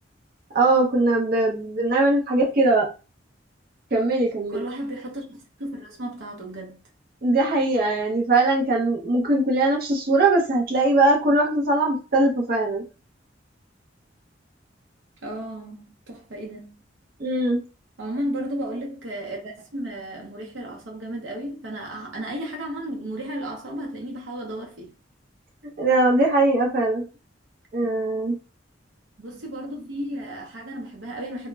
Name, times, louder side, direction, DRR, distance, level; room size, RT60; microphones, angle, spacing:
voice 1, 0.5-2.9 3.9-4.6 7.2-12.8 17.2-17.6 25.8-27.0 27.7-28.3, right 2 dB, 50° right, 0.6 m, -21 dB
voice 2, 4.5-6.9 15.2-16.8 18.0-25.0 27.8-28.1 29.2-31.5, right 1 dB, 90° right, 0.7 m, -34 dB
2.1 x 2.0 x 3.3 m
head